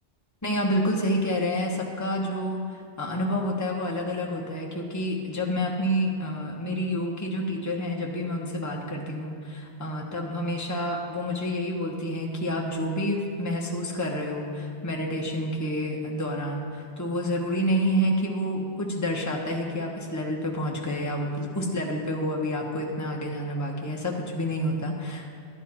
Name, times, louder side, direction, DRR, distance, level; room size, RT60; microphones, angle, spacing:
voice 1, 0.4-25.3, equal, 15° left, -1 dB, 1.1 m, -28 dB
12.0 x 10.0 x 4.2 m, 2.2 s
omnidirectional pair, 1.2 m